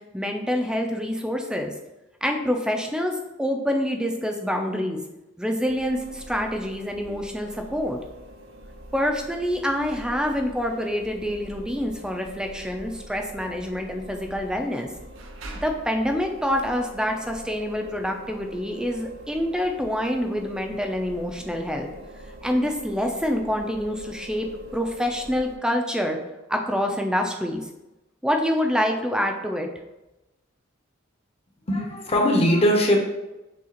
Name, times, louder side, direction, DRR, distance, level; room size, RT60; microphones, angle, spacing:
voice 1, 0.1-1.7 2.2-5.0 5.4-8.0 8.9-14.9 15.5-21.9 22.4-24.5 24.7-26.2 26.5-27.6 28.2-29.7, equal, 5° right, 3 dB, 0.4 m, -26 dB
sound 1, 5.7-25.6, right 1 dB, 85° right, 0.6 m, -44 dB
voice 2, 31.7-33.1, equal, 30° left, 0 dB, 0.7 m, -20 dB
6.2 x 2.4 x 2.9 m, 0.99 s
head